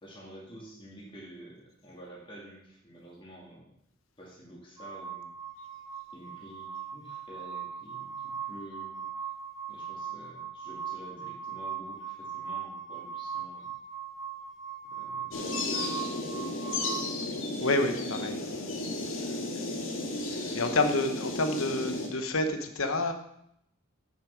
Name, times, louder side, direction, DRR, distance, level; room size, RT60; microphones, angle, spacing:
voice 1, 0.0-3.7 4.2-5.3 6.1-9.0 9.7-13.7 14.9-16.8 19.3-19.4, right 1 dB, 25° left, -4 dB, 2.4 m, -49 dB
sound 1, 4.8-17.0, right 7 dB, 20° right, 1.2 m, -39 dB
sound 2, 15.3-22.1, left 2 dB, 70° left, 1.8 m, -34 dB
voice 2, 17.6-18.8 19.1-19.4 20.5-23.1, left 2 dB, 90° left, 7 dB, 1.0 m, -29 dB
8.6 x 6.6 x 5.9 m, 0.74 s
head